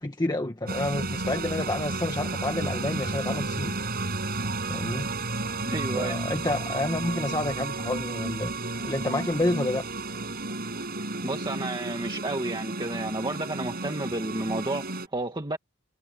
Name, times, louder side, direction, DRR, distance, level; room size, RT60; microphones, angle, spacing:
voice 1, 0.0-3.8 4.7-5.1 5.9-8.5 8.8-9.8, left 2 dB, 20° left, 1.5 m, -29 dB
sound 1, 0.7-15.1, right 2 dB, 50° right, 7.2 m, -32 dB
voice 2, 5.6-6.2 11.2-15.6, right 2 dB, 20° right, 1.9 m, -31 dB
head